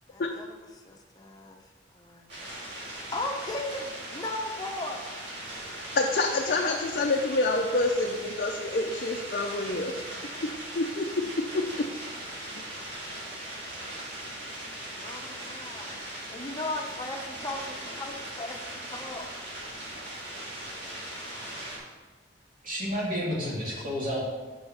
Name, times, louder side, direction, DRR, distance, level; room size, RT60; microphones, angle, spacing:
voice 1, 0.1-1.6 1.9-2.3 3.1-5.0 6.0-6.1 6.4-6.8 11.2-11.3 15.0-15.9 16.3-19.3 21.1-21.9, left 2 dB, 20° left, 1 dB, 0.9 m, -37 dB
sound 1, 2.3-21.8, right 1 dB, 70° right, 2.4 m, -39 dB
voice 2, 5.9-9.9 10.7-11.9, left 2 dB, 55° left, 0 dB, 0.6 m, -27 dB
voice 3, 22.6-24.3, equal, 50° right, -5 dB, 2.4 m, -30 dB
5.7 x 5.3 x 5.9 m, 1.3 s
head